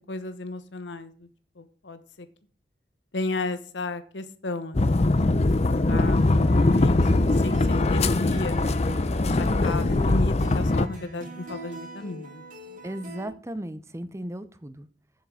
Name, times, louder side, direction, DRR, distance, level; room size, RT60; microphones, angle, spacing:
voice 1, 0.1-1.3 1.6-2.3 3.1-8.6 9.2-12.8, left 2 dB, 80° left, 11 dB, 1.0 m, -34 dB
sound 1, 4.7-10.9, left 2 dB, 35° left, 0.6 m, -22 dB
sound 2, 5.2-13.3, equal, 45° right, 2.7 m, -41 dB
voice 2, 12.8-14.9, right 1 dB, 15° right, 13 dB, 0.7 m, -36 dB
7.4 x 7.3 x 6.9 m, 0.43 s
head